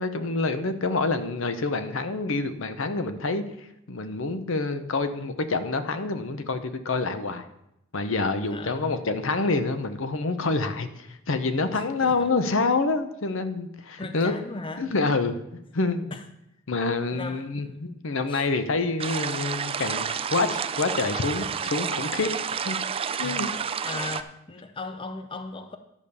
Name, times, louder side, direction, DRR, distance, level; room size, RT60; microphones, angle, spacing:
voice 1, 0.0-7.5 7.9-14.4 14.8-16.1 16.7-22.8 23.2-23.5, left 3 dB, 70° left, 0.8 m, -27 dB
voice 2, 8.5-9.0 11.7-12.3 14.0-14.9 16.1-16.2 17.1-17.8 18.3-18.5 23.2-23.4 23.8-25.8, left 3 dB, 25° left, 0.5 m, -37 dB
sound 1, 19.0-24.2, right 7 dB, 30° right, 0.4 m, -30 dB
11.0 x 5.1 x 6.9 m
head